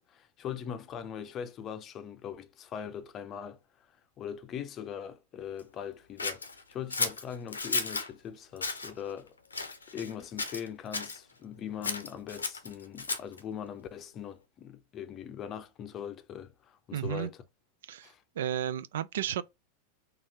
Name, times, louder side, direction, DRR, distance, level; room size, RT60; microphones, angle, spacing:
voice 1, 0.0-3.6 4.2-6.4 6.7-9.4 9.9-17.4 18.0-18.2, left 8 dB, 30° left, 0.6 m, -41 dB
Scissors, 6.2-8.1 8.6-8.9 9.5-10.1 10.4-11.2 11.8-13.4, left 4 dB, 75° left, 0.7 m, -33 dB
voice 2, 16.9-17.3 17.9-18.1 18.4-19.4, right 10 dB, 60° right, 0.3 m, -32 dB
4.3 x 2.6 x 3.8 m
figure-of-eight pair, 90°, 0 cm